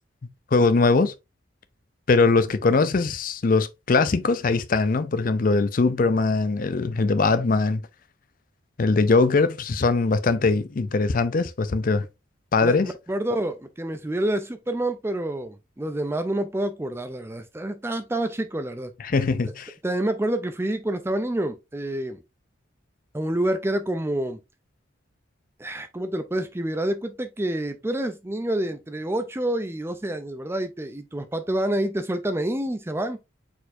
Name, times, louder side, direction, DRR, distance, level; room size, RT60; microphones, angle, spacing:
voice 1, 0.5-1.1 2.1-7.8 8.8-12.1 12.5-12.9 19.0-19.7, left 3 dB, 45° left, 0.4 m, -21 dB
voice 2, 12.6-18.9 19.8-22.2 23.1-24.4 25.6-33.2, right 1 dB, 10° right, 0.4 m, -28 dB
4.4 x 4.3 x 2.6 m
head